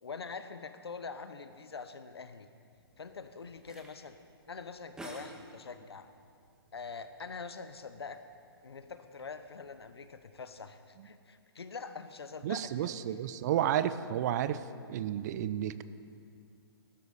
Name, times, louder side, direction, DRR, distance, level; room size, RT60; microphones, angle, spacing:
voice 1, 0.0-2.5 3.0-4.2 4.5-6.1 6.7-8.2 8.6-12.9, left 5 dB, 80° left, 10 dB, 1.0 m, -44 dB
sound 1, 2.7-10.5, right 1 dB, 5° right, 1.5 m, -55 dB
voice 2, 12.4-14.6 14.9-15.8, right 11 dB, 45° right, 14 dB, 0.6 m, -31 dB
18.0 x 12.5 x 4.2 m, 2.3 s
hypercardioid pair, 130°, 13 cm